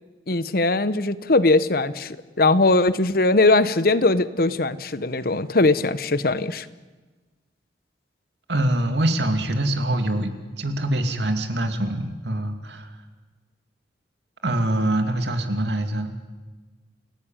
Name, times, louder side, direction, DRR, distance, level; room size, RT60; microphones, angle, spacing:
voice 1, 0.3-6.7, left 2 dB, 55° left, 15 dB, 1.0 m, -20 dB
voice 2, 8.5-10.3 10.6-12.9 14.4-16.1, right 1 dB, 75° right, 6 dB, 2.6 m, -24 dB
29.0 x 17.5 x 9.1 m, 1.3 s
head